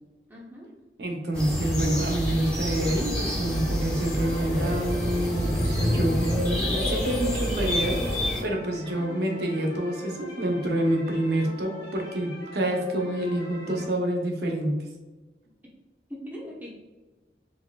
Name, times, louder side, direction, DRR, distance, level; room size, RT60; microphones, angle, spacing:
voice 1, 0.3-0.7 8.8-9.1 16.1-16.7, equal, 10° right, -4 dB, 0.8 m, -41 dB
voice 2, 1.0-14.7, right 1 dB, 70° right, 1 dB, 0.7 m, -27 dB
sound 1, 1.3-8.4, equal, 5° left, 1.4 m, -27 dB
sound 2, 2.4-13.9, left 1 dB, 85° left, 1.1 m, -44 dB
4.0 x 3.1 x 2.2 m, 1.2 s
head